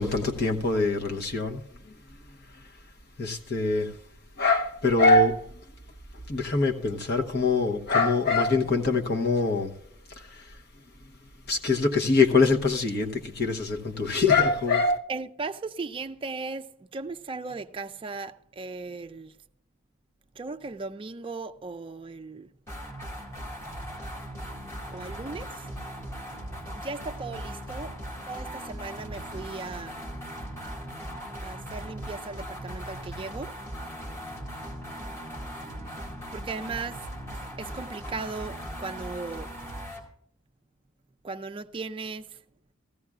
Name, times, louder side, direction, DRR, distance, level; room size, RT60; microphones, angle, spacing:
voice 1, 0.0-1.6 3.2-3.9 4.4-5.3 6.3-9.7 11.5-15.0, left 3 dB, 55° left, 1.1 m, -23 dB
voice 2, 15.1-19.4 20.4-22.5 24.9-25.7 26.8-28.0 28.3-30.0 31.4-33.6 36.3-37.0 37.6-39.5 41.2-42.4, right 4 dB, 25° right, 0.4 m, -37 dB
sound 1, 22.7-40.1, equal, 15° left, 2.1 m, -38 dB
16.0 x 14.5 x 2.4 m
head